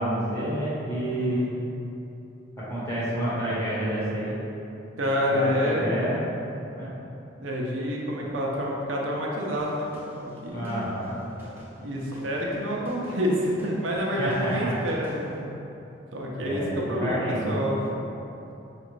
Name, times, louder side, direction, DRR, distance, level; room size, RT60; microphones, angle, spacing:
voice 1, 0.0-1.4 2.6-4.4 5.3-6.2 6.8-6.9 10.5-11.2 14.2-14.7 16.4-17.7, right 1 dB, 15° left, -10 dB, 1.0 m, -29 dB
voice 2, 1.1-1.6 5.0-6.0 7.4-10.8 11.8-15.4 16.1-17.8, equal, 90° right, -3 dB, 0.6 m, -28 dB
sound 1, 9.6-15.3, equal, 10° right, 0.6 m, -48 dB
5.2 x 2.5 x 3.1 m, 2.9 s
head